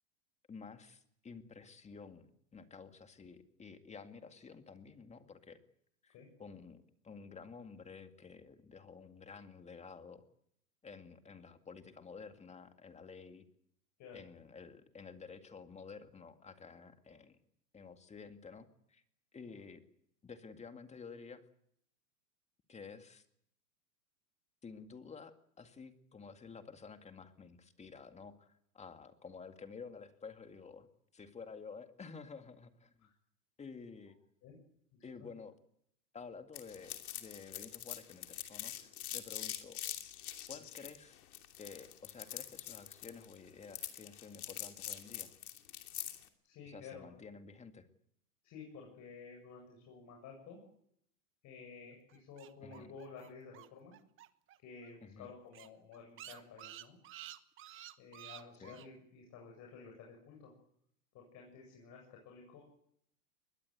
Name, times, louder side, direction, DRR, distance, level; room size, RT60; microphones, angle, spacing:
voice 1, 0.5-5.6 6.0-6.1 6.4-10.2 10.8-13.4 14.1-17.4 17.7-19.0 19.3-19.8 20.2-21.4 22.7-23.2 24.6-30.9 31.1-33.1 33.6-34.2 35.0-35.5 36.1-39.8 40.5-41.2 41.6-45.3 46.6-47.9 52.6-53.0 55.0-55.3 58.6-58.8, left 5 dB, 15° left, 8 dB, 2.1 m, -51 dB
voice 2, 34.9-35.3 46.4-47.2 48.4-50.6 51.4-53.9 54.6-57.0 58.0-60.5 61.1-62.6, left 5 dB, 35° left, 0 dB, 7.9 m, -52 dB
sound 1, 36.5-46.3, left 12 dB, 70° left, 2.9 m, -44 dB
sound 2, 52.1-54.6 54.8-54.9 55.2-55.3 55.5-58.9, right 13 dB, 25° right, 1.2 m, -51 dB
23.0 x 20.5 x 8.2 m, 0.72 s
hypercardioid pair, 115°, 46 cm